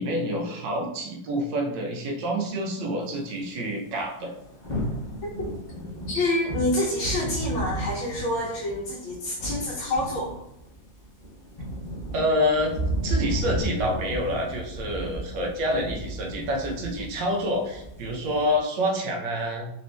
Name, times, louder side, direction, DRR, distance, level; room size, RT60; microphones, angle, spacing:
voice 1, 0.0-4.3 12.1-12.8 13.0-19.7, equal, 75° right, 1 dB, 1.3 m, -27 dB
sound 1, 4.0-18.6, right 1 dB, 50° left, 0.5 m, -33 dB
voice 2, 6.1-10.3, left 1 dB, 90° left, -4 dB, 1.5 m, -27 dB
4.2 x 2.6 x 3.2 m, 0.80 s
omnidirectional pair, 2.1 m